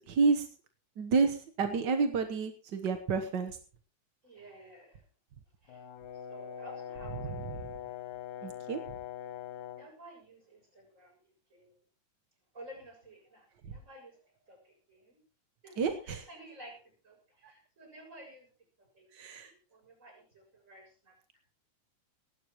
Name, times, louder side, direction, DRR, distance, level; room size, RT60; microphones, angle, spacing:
voice 1, 0.1-0.5 1.0-3.6 8.4-8.8 15.8-16.2 19.1-19.5, right 4 dB, 55° right, 6 dB, 1.2 m, -29 dB
voice 2, 4.2-5.0 5.6-5.9 6.1-7.7 9.7-11.2 11.5-11.8 12.5-15.2 15.6-18.5 18.8-21.2, right 1 dB, 25° right, 1 dB, 7.5 m, -53 dB
Brass instrument, 5.7-9.9, left 10 dB, 80° left, 2.3 m, -43 dB
19.0 x 16.5 x 3.1 m, 0.37 s
omnidirectional pair, 3.4 m